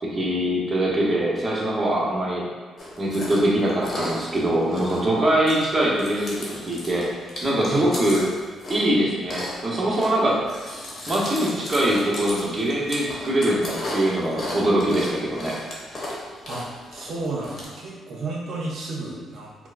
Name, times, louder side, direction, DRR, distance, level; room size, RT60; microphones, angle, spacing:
voice 1, 0.0-2.4 3.0-7.1 7.4-8.2 8.7-10.4 11.1-15.5, right 1 dB, 25° right, -5 dB, 0.9 m, -23 dB
Chewing mastication, 2.8-17.6, left 1 dB, 45° left, 1.0 m, -36 dB
voice 2, 16.5-19.5, right 3 dB, 65° right, -2 dB, 0.7 m, -32 dB
4.5 x 2.0 x 2.5 m, 1.4 s
cardioid pair, 90°, 0 cm